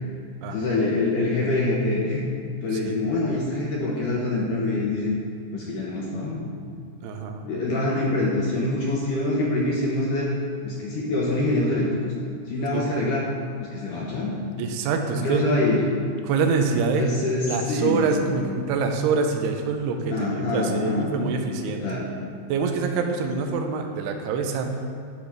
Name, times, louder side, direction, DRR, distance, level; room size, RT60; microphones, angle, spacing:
voice 1, 0.5-2.3 2.6-5.1 5.5-6.5 7.5-10.3 10.6-12.1 12.5-13.3 13.6-14.3 15.1-15.8 17.0-18.3 20.1-21.1 21.6-22.1, left 2 dB, 70° left, -4 dB, 2.1 m, -25 dB
voice 2, 7.0-7.5 12.7-12.8 14.6-15.4 16.2-17.0 17.5-22.0 22.5-24.7, right 5 dB, 80° right, 4 dB, 2.7 m, -25 dB
12.0 x 5.0 x 6.0 m, 2.3 s
omnidirectional pair, 4.8 m